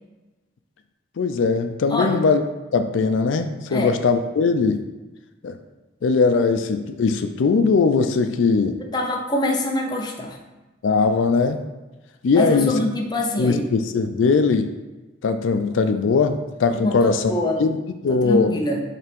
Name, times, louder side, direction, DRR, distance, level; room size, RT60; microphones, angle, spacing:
voice 1, 1.2-2.4 2.7-4.8 5.4-5.6 6.0-8.8 10.8-11.6 12.2-12.8 13.4-14.7 15.2-17.3 17.6-17.8 18.0-18.5, left 4 dB, 85° left, 8 dB, 0.4 m, -20 dB
voice 2, 1.9-2.2 3.7-3.9 8.8-10.4 12.3-13.6 16.8-17.6 18.1-18.8, left 1 dB, 20° left, 0 dB, 0.7 m, -24 dB
5.6 x 3.4 x 5.2 m, 1.1 s
head